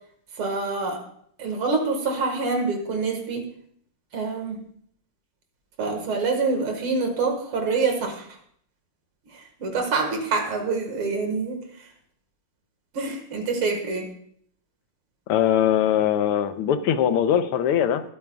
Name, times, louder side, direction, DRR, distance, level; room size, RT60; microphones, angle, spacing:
voice 1, 0.4-1.0 1.4-3.5 4.1-4.6 5.8-8.4 9.3-11.6 12.9-14.1, right 4 dB, 75° right, 4 dB, 2.6 m, -26 dB
voice 2, 15.3-18.0, left 9 dB, 85° left, 10 dB, 1.7 m, -21 dB
21.0 x 8.6 x 2.3 m, 0.67 s
omnidirectional pair, 2.4 m